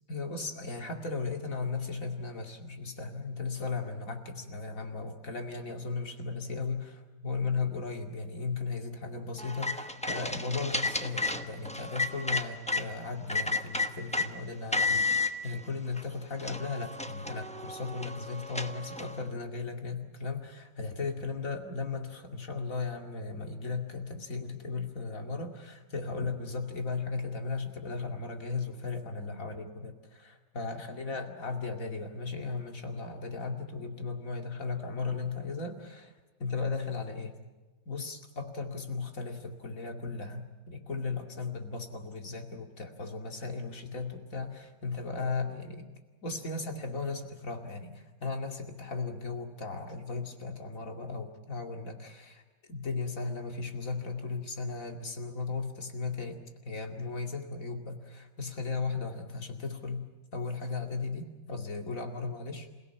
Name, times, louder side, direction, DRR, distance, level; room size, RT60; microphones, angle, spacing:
voice 1, 0.1-36.1 36.4-37.3 37.9-45.8 46.2-52.4 52.7-60.1 60.3-62.7, left 4 dB, 40° left, 4 dB, 2.7 m, -36 dB
sound 1, 9.4-12.8 13.3-14.3 14.7-15.3 16.0-16.1 16.4-19.2, left 3 dB, 10° left, 0.3 m, -32 dB
28.5 x 16.5 x 9.5 m, 1.2 s
omnidirectional pair, 2.2 m